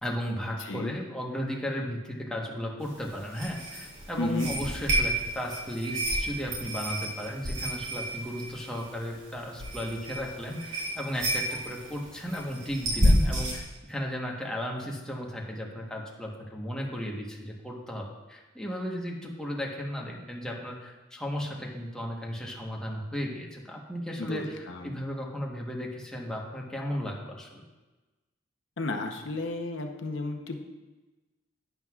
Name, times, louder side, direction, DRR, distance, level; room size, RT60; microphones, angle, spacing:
voice 1, 0.0-27.6, equal, 5° left, -2 dB, 1.2 m, -35 dB
voice 2, 0.6-0.9 4.2-4.5 24.2-24.9 28.8-30.6, left 2 dB, 70° left, 4 dB, 0.8 m, -33 dB
sound 1, 2.8-13.6, equal, 85° right, 3.3 m, -31 dB
11.5 x 9.3 x 2.4 m, 1.2 s
head